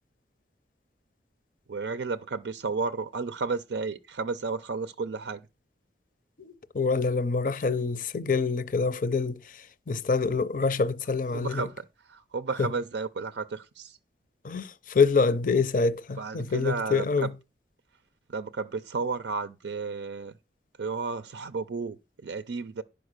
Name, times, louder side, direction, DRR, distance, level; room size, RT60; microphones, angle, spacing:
voice 1, 1.7-5.4 11.3-14.0 16.2-17.3 18.3-20.3 20.8-22.8, right 4 dB, 75° right, 0.5 m, -33 dB
voice 2, 6.4-11.7 12.6-12.7 14.4-17.3, left 4 dB, 45° left, 0.6 m, -26 dB
10.5 x 5.0 x 6.5 m
head